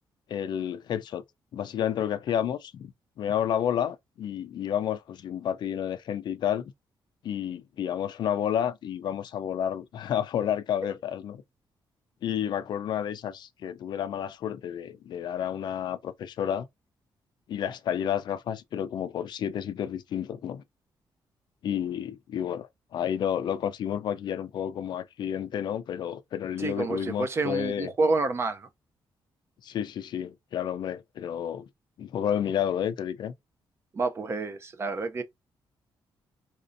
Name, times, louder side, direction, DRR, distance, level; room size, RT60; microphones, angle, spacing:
voice 1, 0.3-1.2 1.5-2.9 3.2-6.7 7.2-11.4 12.2-16.7 17.5-20.6 21.6-27.9 29.6-31.6 32.0-33.3, left 9 dB, 60° left, 0.4 m, -30 dB
voice 2, 26.6-28.7 33.9-35.2, right 3 dB, 30° right, 0.5 m, -28 dB
4.1 x 2.6 x 2.5 m
wide cardioid pair, 175°, 9 cm